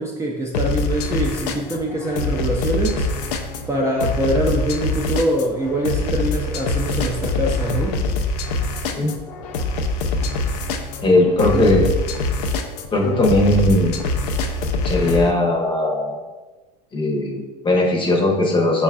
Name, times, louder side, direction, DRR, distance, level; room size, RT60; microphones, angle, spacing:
voice 1, 0.0-3.1 3.7-8.0 11.5-11.7, right 1 dB, 15° right, -2 dB, 0.4 m, -23 dB
sound 1, 0.5-15.3, left 3 dB, 70° left, 0.4 m, -24 dB
voice 2, 11.0-11.9 12.9-14.0 14.8-16.2 16.9-18.8, left 1 dB, 25° left, 1 dB, 0.7 m, -18 dB
5.2 x 2.4 x 2.3 m, 1.2 s
hypercardioid pair, 95°, 21 cm